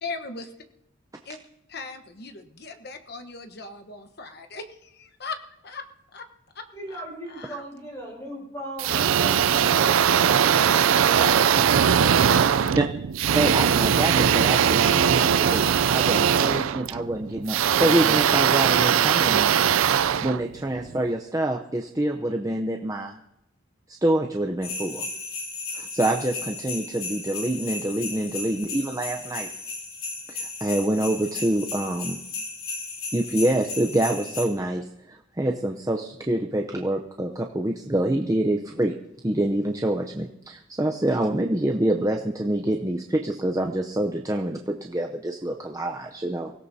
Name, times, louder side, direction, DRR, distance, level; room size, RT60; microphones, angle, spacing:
voice 1, 0.0-0.5 1.2-1.4 1.7-5.8 6.1-6.3 6.5-7.0 7.3-7.6 10.3-10.4 11.3-11.5 12.3-12.7, left 4 dB, 50° left, 7 dB, 1.1 m, -39 dB
voice 2, 6.7-11.7, right 1 dB, 15° left, -1 dB, 5.0 m, -38 dB
sound 1, 8.8-21.0, right 8 dB, 80° right, 0.4 m, -20 dB
voice 3, 13.3-19.5 20.2-23.1 23.9-25.1 25.7-29.5 30.3-32.2 33.1-38.9 39.2-46.5, right 1 dB, 15° right, 2 dB, 0.6 m, -26 dB
sound 2, 24.6-34.4, left 3 dB, 80° left, 3.3 m, -35 dB
24.0 x 17.0 x 2.8 m, 0.85 s
head